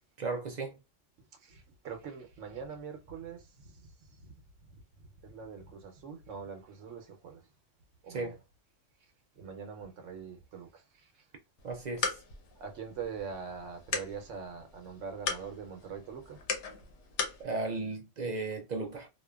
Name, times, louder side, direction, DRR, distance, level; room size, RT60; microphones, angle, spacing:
voice 1, 0.2-0.8 8.1-8.4 11.6-12.2 17.4-19.1, right 3 dB, 55° right, 0.5 m, -35 dB
voice 2, 1.4-4.4 5.2-7.4 8.0-8.3 9.4-11.2 12.6-16.4, right 6 dB, 85° right, 1.1 m, -43 dB
sound 1, 11.6-17.4, left 5 dB, 75° left, 1.0 m, -39 dB
2.8 x 2.2 x 2.2 m
omnidirectional pair, 1.2 m